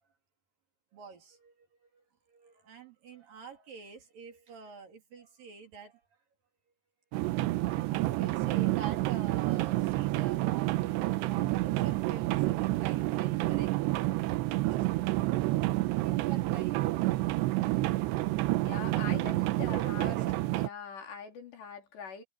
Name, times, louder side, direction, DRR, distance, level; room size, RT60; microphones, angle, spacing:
voice 1, 0.9-6.0 7.9-14.9 15.8-16.9 19.6-20.3, right 6 dB, 55° right, 4.6 m, -47 dB
sound 1, 7.1-20.7, right 18 dB, 90° right, 3.0 m, -29 dB
voice 2, 18.6-20.2 20.5-22.2, left 6 dB, 75° left, 6.1 m, -42 dB
omnidirectional pair, 5.0 m